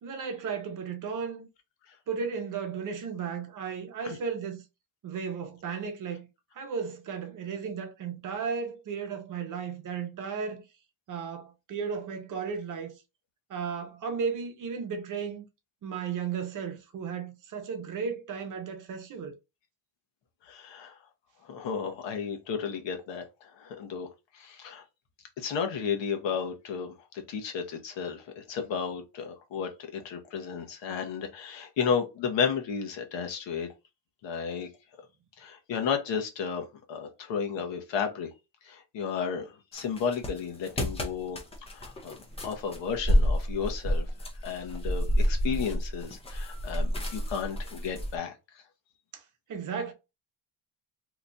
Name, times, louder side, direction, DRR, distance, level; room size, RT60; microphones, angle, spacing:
voice 1, 0.0-1.5 2.1-4.6 5.0-6.3 6.5-10.6 11.1-12.9 13.5-15.4 15.8-19.3 49.1-49.2 49.5-49.9, right 6 dB, 45° right, 0.7 m, -34 dB
voice 2, 20.5-20.9 21.5-24.1 24.3-24.8 25.4-26.9 27.3-33.7 34.2-34.7 35.4-38.3 38.6-41.4 41.7-42.2 42.4-44.1 44.4-48.3, left 6 dB, 70° left, 1.0 m, -33 dB
sound 1, 39.7-48.2, equal, 15° left, 0.5 m, -29 dB
3.0 x 2.4 x 3.9 m
cardioid pair, 180°, 46 cm